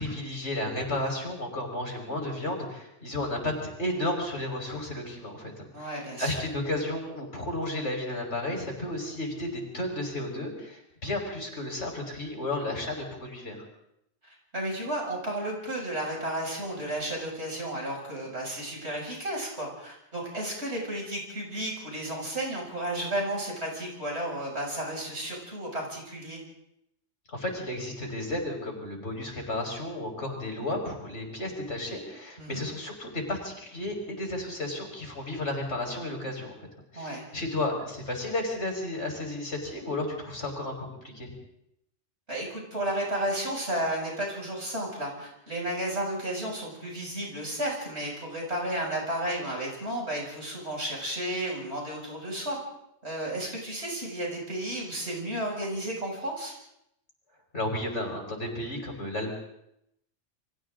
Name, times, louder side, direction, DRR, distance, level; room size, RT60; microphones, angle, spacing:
voice 1, 0.0-13.6 27.3-36.6 36.9-41.3 57.5-59.3, left 1 dB, 75° left, 1 dB, 5.7 m, -33 dB
voice 2, 5.7-6.4 14.2-26.4 32.4-32.6 36.9-37.2 42.3-52.6 53.0-56.5, right 1 dB, 65° right, -1 dB, 7.4 m, -33 dB
29.5 x 23.5 x 3.9 m, 0.80 s
omnidirectional pair, 1.2 m